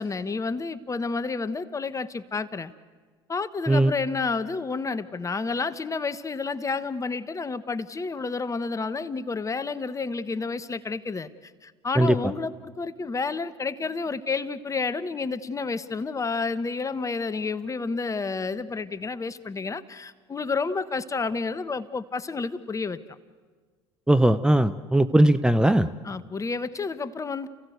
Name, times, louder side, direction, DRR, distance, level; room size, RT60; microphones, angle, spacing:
voice 1, 0.0-2.7 3.3-23.0 26.0-27.5, left 4 dB, 25° left, 13 dB, 1.2 m, -30 dB
voice 2, 24.1-25.9, right 1 dB, 5° right, 11 dB, 0.8 m, -19 dB
30.0 x 16.0 x 8.1 m, 1.5 s
hypercardioid pair, 70°, 13 cm